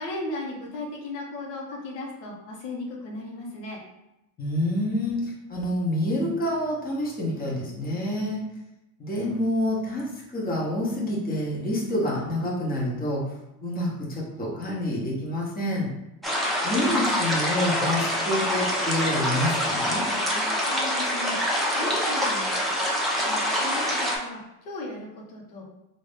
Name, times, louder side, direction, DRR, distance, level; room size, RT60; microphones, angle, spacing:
voice 1, 0.0-3.8 20.2-22.5 23.2-25.6, left 2 dB, 90° left, -2 dB, 1.1 m, -36 dB
voice 2, 4.4-8.5 9.0-13.3 13.6-15.9 16.6-20.1, left 1 dB, 20° left, -4 dB, 1.0 m, -27 dB
sound 1, 16.2-24.2, equal, ahead, 0.6 m, -25 dB
3.1 x 2.6 x 3.4 m, 0.91 s
supercardioid pair, 100°, 46 cm